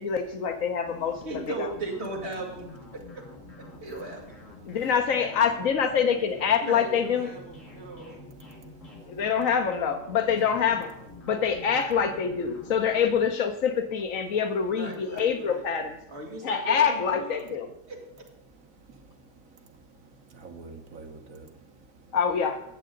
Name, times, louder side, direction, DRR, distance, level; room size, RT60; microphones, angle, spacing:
voice 1, 0.0-1.1 1.6-1.7 4.7-7.3 9.1-10.9 11.3-16.0 16.4-17.7 22.1-22.6, left 7 dB, 90° left, 6 dB, 1.3 m, -25 dB
sound 1, 0.8-13.3, left 3 dB, 70° left, 3.2 m, -47 dB
voice 2, 1.2-2.7 2.9-3.0 3.8-4.2 6.6-8.1 14.7-15.6 16.1-17.4 17.9-18.0, right 2 dB, 55° right, -1 dB, 2.6 m, -37 dB
voice 3, 18.9-19.2 19.5-22.2, right 3 dB, 85° right, 5 dB, 1.7 m, -48 dB
20.5 x 7.6 x 3.9 m, 0.85 s
omnidirectional pair, 1.4 m